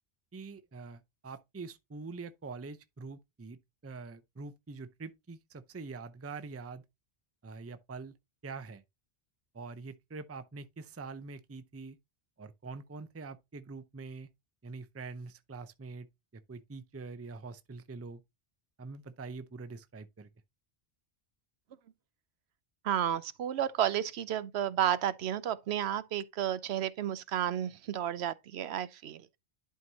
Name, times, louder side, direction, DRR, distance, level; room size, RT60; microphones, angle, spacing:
voice 1, 0.3-6.8 7.4-8.1 8.4-8.8 9.5-12.0 12.4-14.3 14.6-16.1 16.3-18.2 18.8-20.3, right 4 dB, 20° right, 0.4 m, -44 dB
voice 2, 22.8-29.3, right 10 dB, 75° right, 0.9 m, -32 dB
11.0 x 4.6 x 2.8 m
omnidirectional pair, 1.1 m